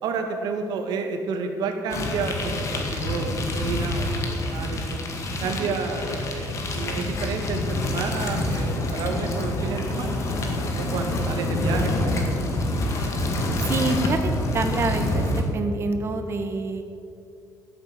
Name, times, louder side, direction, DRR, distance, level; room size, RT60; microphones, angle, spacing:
voice 1, 0.0-5.0 5.4-10.2 10.8-12.3, right 4 dB, 80° right, 4 dB, 1.8 m, -30 dB
sound 1, 1.9-15.4, left 1 dB, 45° left, 2.0 m, -27 dB
voice 2, 5.4-5.7 13.6-15.3 15.5-16.8, right 3 dB, 40° right, 6 dB, 1.4 m, -27 dB
13.5 x 8.2 x 7.7 m, 2.5 s
cardioid pair, 150°, 7 cm